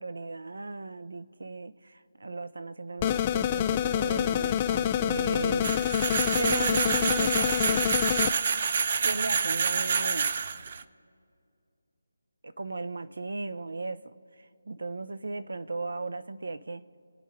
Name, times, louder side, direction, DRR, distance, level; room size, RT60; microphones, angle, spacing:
voice 1, 0.0-5.7 6.4-8.0 9.0-10.4 12.4-16.8, right 3 dB, 75° right, 0.8 m, -36 dB
sound 1, 3.0-8.3, left 10 dB, 20° left, 0.4 m, -27 dB
sound 2, 5.6-10.8, right 6 dB, 40° right, 0.5 m, -28 dB
26.0 x 9.3 x 3.3 m
figure-of-eight pair, 165°, 0 cm